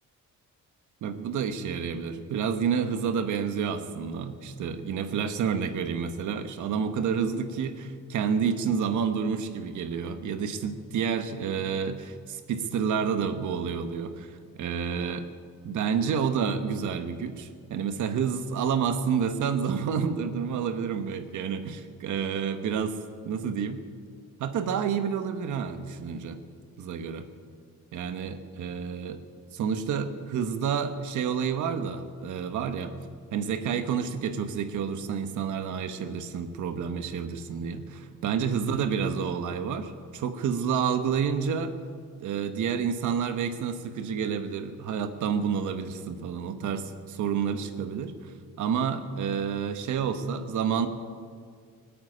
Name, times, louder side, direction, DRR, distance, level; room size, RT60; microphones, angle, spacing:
voice 1, 1.0-15.3 15.6-23.0 23.2-23.8 24.4-26.4 26.8-27.3 27.9-29.2 29.6-33.0 33.3-41.7 42.2-50.9, right 7 dB, 75° right, 8 dB, 1.4 m, -29 dB
18.5 x 8.7 x 8.9 m, 2.1 s
cardioid pair, 90°, 30 cm